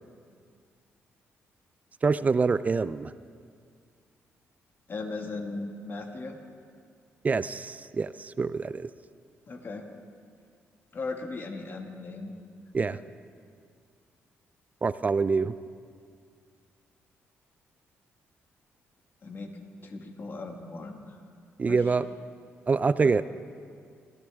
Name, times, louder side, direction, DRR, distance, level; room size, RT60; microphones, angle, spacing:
voice 1, 2.0-3.1 7.2-8.9 12.7-13.0 14.8-15.5 21.6-22.1 22.7-23.2, right 4 dB, 30° right, 15 dB, 0.4 m, -25 dB
voice 2, 4.9-6.4 9.5-9.9 10.9-12.3 12.9-13.0 19.2-19.5 19.8-21.2 21.7-21.8, left 3 dB, 45° left, 3 dB, 1.9 m, -37 dB
26.5 x 14.0 x 3.5 m, 2.2 s
cardioid pair, 80°, 5 cm